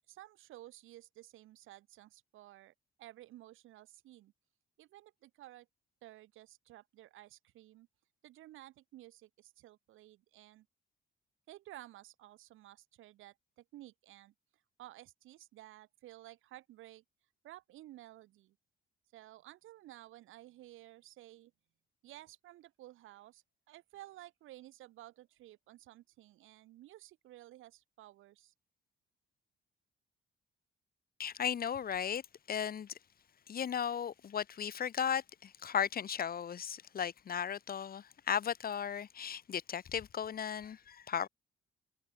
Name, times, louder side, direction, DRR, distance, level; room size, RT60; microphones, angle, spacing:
voice 1, 0.1-4.3 4.8-5.7 6.0-7.9 8.2-10.7 11.5-14.3 14.8-17.0 17.4-18.6 19.1-21.5 22.0-28.5, right 15 dB, 90° right, 7.9 m, -54 dB
voice 2, 31.2-32.2 32.5-32.9 33.5-41.3, left 8 dB, 50° left, 1.2 m, -36 dB
cardioid pair, 90°, 20 cm